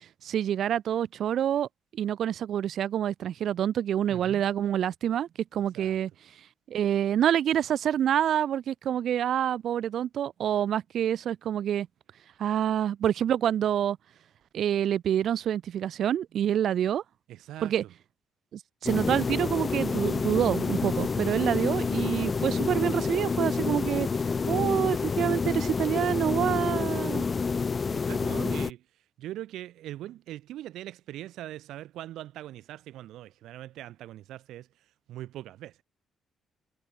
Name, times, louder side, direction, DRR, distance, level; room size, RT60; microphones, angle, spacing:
voice 1, 0.2-1.7 2.0-6.1 6.7-11.9 12.4-14.0 14.5-17.0 17.6-17.8 18.5-24.1 24.5-27.3, right 10 dB, 65° right, 0.9 m, -27 dB
voice 2, 4.1-4.4 5.7-6.0 17.3-17.9 21.1-21.2 27.9-35.8, right 14 dB, 85° right, 6.1 m, -42 dB
sound 1, 18.9-28.7, left 5 dB, 35° left, 1.3 m, -28 dB
cardioid pair, 90°, 0 cm